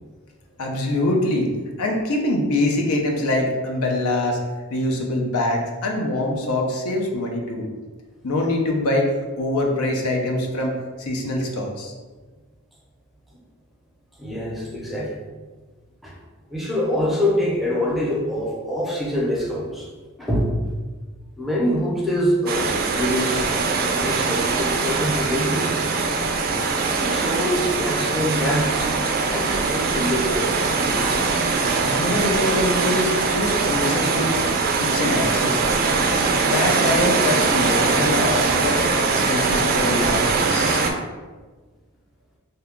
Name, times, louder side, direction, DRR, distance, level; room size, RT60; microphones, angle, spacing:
voice 1, 0.6-1.5 1.8-4.4 4.7-7.7 8.2-9.1 9.4-11.9 31.8-34.4 34.8-35.6 36.4-38.8 39.3-40.8, left 1 dB, 90° left, 1 dB, 0.5 m, -24 dB
voice 2, 14.2-15.2 16.0-16.1 16.5-19.9 20.2-20.5 21.4-23.5 23.9-25.9 27.0-31.1, equal, ahead, -4 dB, 0.6 m, -25 dB
sound 1, 22.5-40.9, right 4 dB, 45° right, 0.3 m, -22 dB
2.7 x 2.2 x 3.5 m, 1.3 s
head